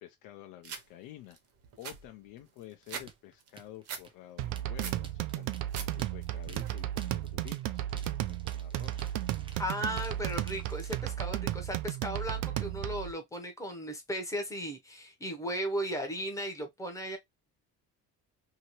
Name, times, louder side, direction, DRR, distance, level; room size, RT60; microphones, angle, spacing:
voice 1, 0.0-1.4 1.8-10.0, left 13 dB, 85° left, 0.6 m, -51 dB
sound 1, 0.6-0.8 1.3-1.4 1.6-3.1 3.4-4.0 4.4-5.0 5.4-5.9 6.2-6.7, right 7 dB, 45° right, 0.8 m, -42 dB
sound 2, 3.1-11.0, right 5 dB, 15° right, 0.3 m, -54 dB
sound 3, 4.4-13.1, right 13 dB, 85° right, 0.5 m, -34 dB
voice 2, 9.6-17.2, equal, 10° left, 0.7 m, -36 dB
2.8 x 2.8 x 2.8 m
cardioid pair, 180°, 33 cm